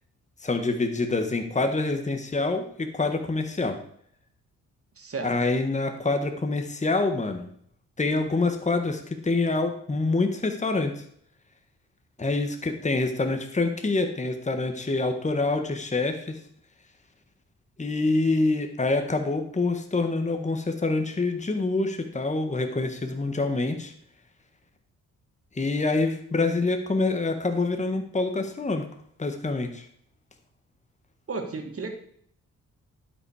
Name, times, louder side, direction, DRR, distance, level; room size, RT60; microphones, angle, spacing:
voice 1, 0.4-3.8 5.2-7.5 8.0-11.0 12.2-16.4 17.8-23.9 25.5-28.8 29.2-29.9, left 3 dB, 20° left, 6 dB, 1.5 m, -26 dB
voice 2, 5.0-5.3 31.3-31.9, right 4 dB, 45° right, 4 dB, 2.5 m, -33 dB
12.0 x 5.7 x 4.9 m, 0.63 s
cardioid pair, 65°, 31 cm